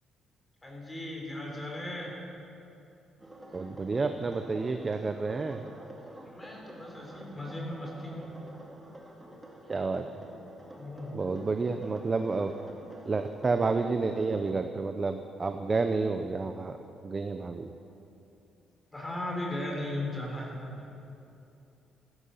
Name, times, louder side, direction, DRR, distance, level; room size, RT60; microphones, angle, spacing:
voice 1, 0.6-2.2 6.2-8.3 10.8-11.2 18.9-21.0, left 1 dB, 20° left, -1 dB, 3.9 m, -37 dB
sound 1, 3.2-14.5, right 1 dB, 15° right, 2.3 m, -49 dB
voice 2, 3.5-5.6 9.7-10.1 11.1-12.5 13.0-16.8 17.0-17.7, right 4 dB, 30° right, 7 dB, 0.7 m, -30 dB
15.5 x 13.5 x 5.7 m, 2.8 s
cardioid pair, 90°, 0 cm